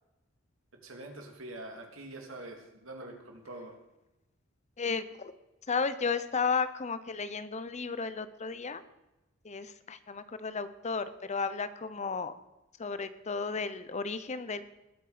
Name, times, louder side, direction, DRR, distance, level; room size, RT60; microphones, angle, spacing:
voice 1, 0.8-3.8, right 2 dB, 75° right, 2 dB, 2.8 m, -45 dB
voice 2, 4.8-5.3 5.7-8.8 9.4-12.3 12.8-14.6, left 5 dB, 35° left, 13 dB, 0.7 m, -33 dB
20.0 x 8.6 x 5.1 m, 0.98 s
head